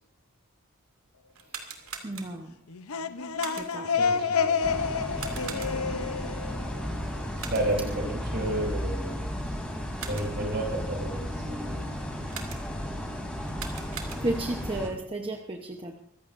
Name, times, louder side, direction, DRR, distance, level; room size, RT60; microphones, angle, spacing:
sound 1, 1.3-2.6 3.4-3.9 5.2-6.0 7.4-7.9 9.7-10.5 12.3-12.9 13.4-14.6, right 6 dB, 75° right, 2.4 m, -42 dB
voice 1, 2.0-2.5 3.5-3.9 14.2-16.0, right 2 dB, 25° right, 2 dB, 1.0 m, -33 dB
sound 2, 2.7-7.4, left 5 dB, 85° left, 0.9 m, -29 dB
voice 2, 4.0-4.6 7.5-8.1 8.3-9.2 10.0-11.8, right 1 dB, 55° right, 0 dB, 6.5 m, -31 dB
sound 3, 4.6-14.9, equal, 5° left, 3.2 m, -34 dB
24.5 x 15.0 x 2.7 m, 0.72 s
head